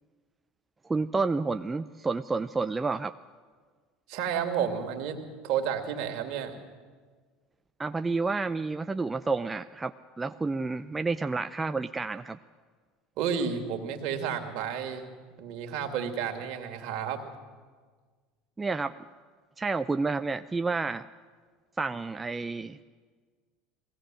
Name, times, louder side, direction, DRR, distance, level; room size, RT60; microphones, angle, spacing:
voice 1, 0.8-3.1 7.8-12.4 18.6-19.0 19.6-21.1 21.8-22.8, right 3 dB, 15° right, 9 dB, 0.5 m, -30 dB
voice 2, 4.1-6.6 13.2-15.1 15.4-17.2, right 7 dB, 60° right, 4 dB, 2.6 m, -31 dB
21.0 x 16.5 x 7.7 m, 1.5 s
hypercardioid pair, 80°, 0 cm